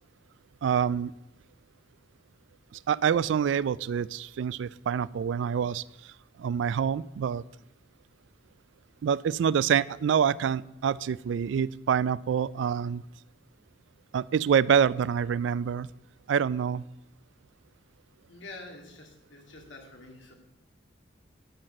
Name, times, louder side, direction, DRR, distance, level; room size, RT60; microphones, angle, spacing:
voice 1, 0.6-1.1 2.7-5.8 6.4-7.4 9.0-13.0 14.1-15.9 16.3-16.8, right 7 dB, 75° right, 20 dB, 0.3 m, -26 dB
voice 2, 18.3-20.3, left 2 dB, 80° left, 1 dB, 2.1 m, -47 dB
12.0 x 4.1 x 7.7 m, 0.88 s
head